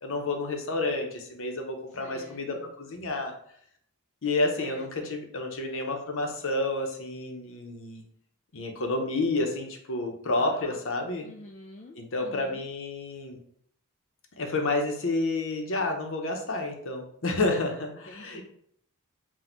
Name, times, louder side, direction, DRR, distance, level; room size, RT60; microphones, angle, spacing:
voice 1, 0.0-3.3 4.2-8.0 8.5-11.3 11.9-13.4 14.4-18.4, left 2 dB, 60° left, 3 dB, 0.8 m, -30 dB
voice 2, 2.0-2.7 4.6-4.9 10.4-10.8 11.2-12.7 18.1-18.4, left 2 dB, 30° left, 1 dB, 0.3 m, -47 dB
4.1 x 2.3 x 4.4 m, 0.66 s
head